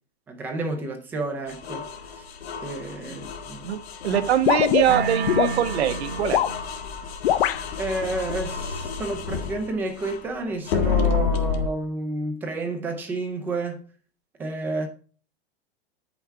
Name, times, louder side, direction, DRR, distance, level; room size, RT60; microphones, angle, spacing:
voice 1, 0.3-1.8 2.2-2.3 2.6-3.7 7.8-13.8 14.4-14.9, right 2 dB, 5° right, 0.4 m, -30 dB
sound 1, 1.5-10.3 10.7-11.7, left 6 dB, 80° left, 1.4 m, -30 dB
voice 2, 3.6-6.4, right 10 dB, 85° right, 1.1 m, -23 dB
sound 2, 4.5-5.5 6.2-6.6 7.2-7.6, left 12 dB, 65° left, 0.6 m, -21 dB
sound 3, 4.9-6.8, right 5 dB, 25° right, 1.1 m, -30 dB
8.2 x 5.7 x 4.4 m
supercardioid pair, 170°, 31 cm